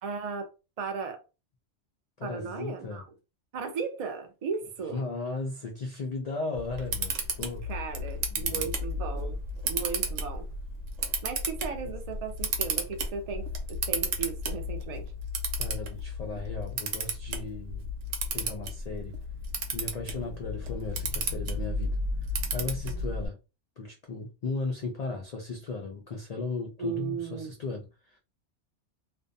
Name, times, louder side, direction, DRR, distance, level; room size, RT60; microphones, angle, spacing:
voice 1, 0.0-0.5 0.8-1.2 2.2-3.0 3.5-5.0 7.7-9.4 9.7-10.5 11.2-15.1 26.8-27.5, right 5 dB, 65° right, 0.3 m, -36 dB
voice 2, 2.2-3.0 4.9-7.7 8.3-8.7 11.8-11.9 15.6-17.9 18.3-19.2 19.7-22.0 22.5-23.4 23.8-28.2, left 3 dB, 75° left, 0.3 m, -36 dB
Camera, 6.5-23.3, right 1 dB, 90° right, 1.0 m, -33 dB
2.5 x 2.1 x 2.6 m
omnidirectional pair, 1.2 m